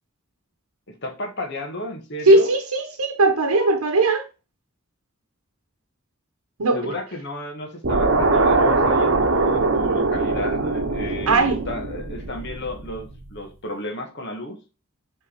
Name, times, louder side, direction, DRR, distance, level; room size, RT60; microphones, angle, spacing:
voice 1, 0.9-2.5 6.7-14.6, left 1 dB, 55° left, 1.4 m, -33 dB
voice 2, 2.3-4.3 6.6-6.9 11.3-11.6, right 2 dB, 90° right, 0.9 m, -18 dB
sound 1, 7.8-13.1, right 3 dB, 60° right, 0.9 m, -21 dB
5.6 x 3.5 x 4.9 m
head